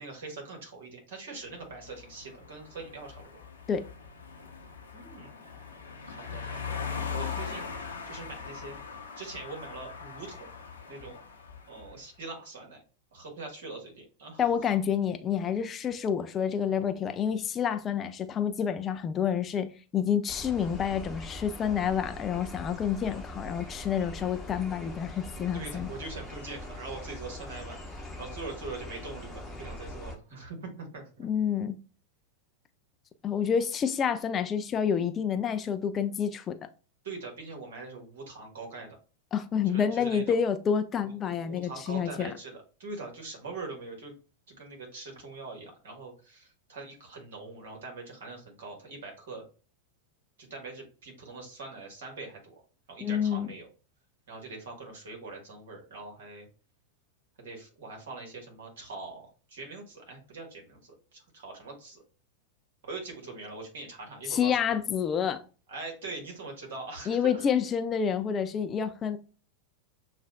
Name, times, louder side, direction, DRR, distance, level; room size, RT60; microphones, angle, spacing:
voice 1, 0.0-3.4 4.9-5.7 6.0-6.8 7.1-8.8 9.1-10.5 10.9-11.2 11.7-12.8 13.1-14.4 25.5-31.3 37.0-39.0 39.6-40.4 41.0-44.2 44.5-49.5 50.4-52.6 52.9-53.7 54.3-56.5 57.4-62.0 62.8-64.7 65.7-67.4, right 3 dB, 60° right, 1.6 m, -43 dB
sound 1, 1.7-12.0, left 6 dB, 70° left, 0.7 m, -40 dB
voice 2, 14.4-25.9 31.2-31.8 33.2-36.6 39.3-42.3 53.0-53.5 64.3-65.4 67.1-69.2, left 7 dB, 25° left, 0.3 m, -28 dB
sound 2, 20.3-30.2, left 1 dB, 5° left, 1.0 m, -42 dB
6.7 x 2.4 x 2.4 m
figure-of-eight pair, 90°, 0 cm